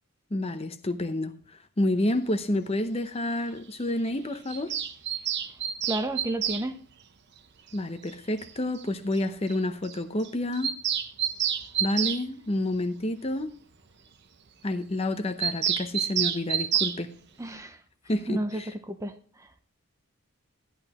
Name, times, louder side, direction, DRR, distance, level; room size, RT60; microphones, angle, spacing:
voice 1, 0.3-4.7 7.7-10.7 11.8-13.5 14.6-17.1 18.1-18.7, left 1 dB, 25° left, 0.7 m, -29 dB
Bird vocalization bird call bird song, 4.5-6.6 8.1-8.2 8.4-8.5 8.8-8.9 9.2-9.3 9.5-9.6 9.8-10.0 10.2-12.2 15.4-17.0, right 9 dB, 50° right, 0.8 m, -28 dB
voice 2, 5.8-6.8 17.4-17.8 18.3-19.5, right 1 dB, 15° right, 0.6 m, -32 dB
14.0 x 11.0 x 3.0 m
head